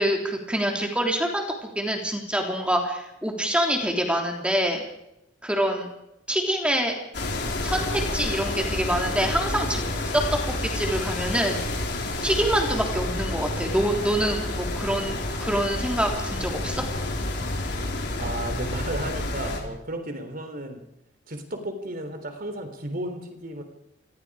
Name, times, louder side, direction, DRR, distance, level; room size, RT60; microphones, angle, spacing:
voice 1, 0.0-4.8 5.4-5.9 6.3-7.0 7.6-11.6 12.2-16.8, equal, 5° right, 2 dB, 3.3 m, -26 dB
sound 1, 7.1-19.6, left 2 dB, 60° left, 4.3 m, -29 dB
voice 2, 18.2-20.8 21.3-23.6, right 1 dB, 50° right, 6 dB, 3.6 m, -34 dB
27.5 x 19.5 x 5.0 m, 0.83 s
head